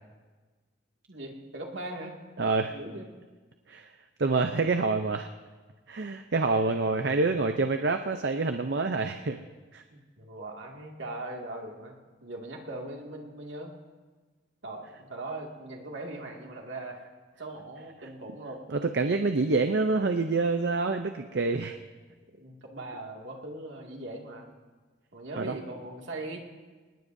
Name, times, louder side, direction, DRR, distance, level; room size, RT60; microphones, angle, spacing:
voice 1, 1.1-2.2 2.7-3.1 9.9-11.9 12.2-13.7 14.6-17.1 17.4-18.6 22.3-24.5 25.1-26.4, right 2 dB, 75° right, 0 dB, 2.2 m, -40 dB
voice 2, 2.4-2.8 3.7-3.9 4.2-5.3 5.9-9.4 9.7-9.8 18.7-21.8 25.4-25.5, right 3 dB, 60° right, 7 dB, 0.6 m, -27 dB
25.5 x 19.5 x 2.7 m, 1.3 s
head